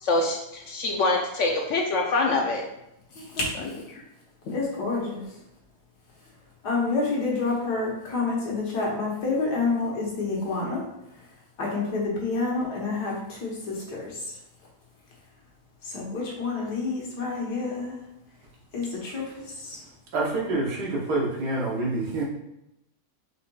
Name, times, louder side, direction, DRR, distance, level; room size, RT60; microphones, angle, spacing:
voice 1, 0.0-2.6 4.5-4.6, left 3 dB, 65° left, 1 dB, 0.8 m, -25 dB
voice 2, 3.1-3.8 4.5-5.4 6.6-10.8 11.1-11.2 11.6-14.4 15.8-18.0 18.7-19.8, left 3 dB, 85° left, -3 dB, 1.8 m, -29 dB
voice 3, 20.1-22.2, right 2 dB, 80° right, -2 dB, 1.5 m, -27 dB
5.0 x 4.1 x 2.3 m, 0.85 s
omnidirectional pair, 1.7 m